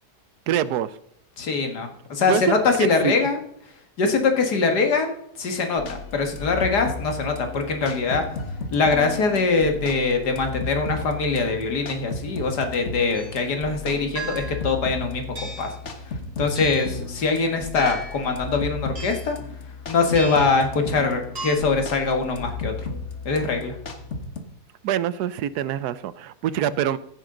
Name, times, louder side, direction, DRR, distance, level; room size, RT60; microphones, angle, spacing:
voice 1, 0.5-0.9 2.2-3.1 24.8-27.0, right 10 dB, 80° right, 16 dB, 1.2 m, -25 dB
voice 2, 1.4-3.4 4.0-8.2 8.7-15.7 16.4-19.4 19.9-22.9 23.3-23.7, left 4 dB, 90° left, 5 dB, 2.3 m, -23 dB
sound 1, 5.8-24.4, left 3 dB, 45° left, 1.6 m, -34 dB
sound 2, 13.1-13.4 14.1-14.7 15.3-15.8 16.5-17.0 17.7-18.2 18.9-19.3 20.1-20.6 21.3-21.5, right 2 dB, 50° right, 3.7 m, -35 dB
15.5 x 9.2 x 3.8 m, 0.73 s
omnidirectional pair, 1.7 m